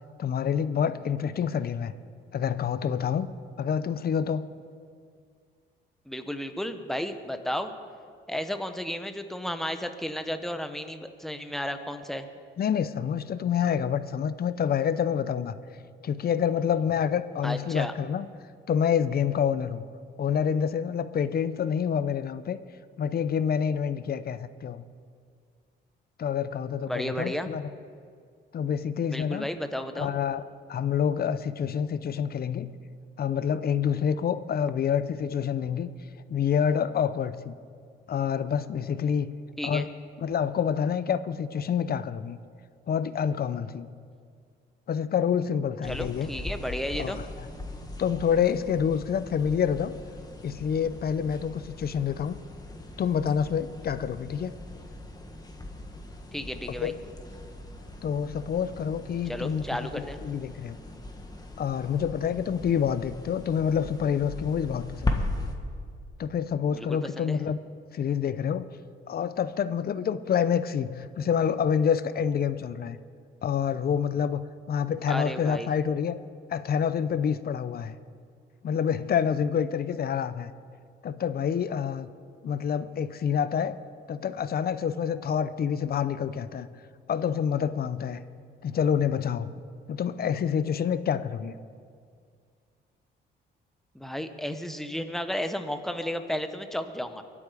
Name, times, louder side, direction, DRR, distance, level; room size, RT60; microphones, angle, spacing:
voice 1, 0.2-1.9 2.3-3.3 3.6-4.4 12.6-15.6 16.0-18.3 18.7-19.8 20.2-22.6 23.0-24.8 26.2-27.6 28.5-29.5 30.0-30.4 30.7-32.7 33.2-35.9 36.3-37.5 38.1-39.3 39.6-39.9 40.2-42.4 42.9-43.9 44.9-46.3 47.0-47.5 48.0-49.9 50.4-52.4 53.0-54.6 56.8-57.0 58.0-59.8 60.2-60.8 61.6-65.2 66.2-67.6 67.9-68.8 69.1-73.0 73.4-76.2 76.5-77.9 78.6-80.5 81.0-82.1 82.4-83.8 84.1-86.7 87.1-88.2 88.6-89.6 89.9-91.5, left 8 dB, 50° left, 14 dB, 0.7 m, -27 dB
voice 2, 6.1-7.7 8.3-12.3 17.4-17.9 26.9-27.5 29.1-30.1 39.6-39.9 45.9-47.2 56.3-56.9 59.3-60.2 66.7-67.4 75.1-75.7 93.9-97.2, equal, ahead, 7 dB, 1.1 m, -33 dB
sound 1, 45.8-65.5, left 2 dB, 20° left, 1.7 m, -39 dB
23.5 x 8.7 x 5.1 m, 2.1 s
cardioid pair, 90°, 20 cm